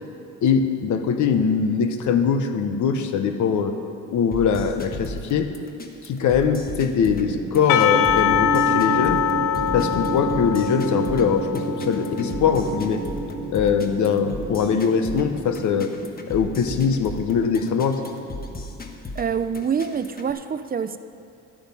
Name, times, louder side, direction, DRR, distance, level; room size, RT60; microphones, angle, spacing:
voice 1, 0.4-3.7 4.1-5.5 6.0-9.2 9.7-13.0 13.5-15.9 16.3-18.0, left 6 dB, 75° left, 7 dB, 1.0 m, -22 dB
sound 1, 4.3-20.3, left 2 dB, 30° left, 1.1 m, -36 dB
sound 2, 7.0-19.2, right 3 dB, 15° right, 1.7 m, -32 dB
Percussion / Church bell, 7.7-12.9, left 9 dB, 90° left, 0.5 m, -24 dB
voice 2, 19.1-21.0, right 7 dB, 30° right, 12 dB, 0.4 m, -26 dB
11.5 x 8.7 x 5.5 m, 2.6 s
cardioid pair, 90°, 30 cm